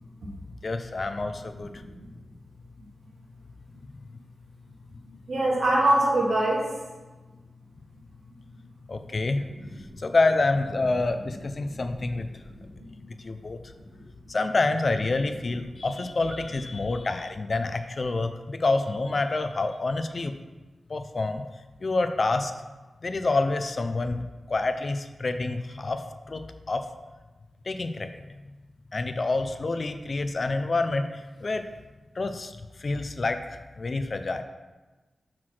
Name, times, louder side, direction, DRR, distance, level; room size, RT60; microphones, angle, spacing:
voice 1, 0.6-1.7 8.9-9.4 10.0-12.3 12.9-13.6 14.3-20.3 20.9-21.4 21.8-22.5 23.0-26.9 27.7-28.2 28.9-31.7 32.2-32.5 32.8-34.4, left 3 dB, 45° left, 8 dB, 0.5 m, -27 dB
voice 2, 1.8-2.2 5.0-6.8 9.0-9.1 9.6-9.9 11.7-11.8 12.4-13.0 13.9-14.1, right 1 dB, 90° right, -4 dB, 2.0 m, -26 dB
5.8 x 4.8 x 6.0 m, 1.2 s
wide cardioid pair, 100°, 0 cm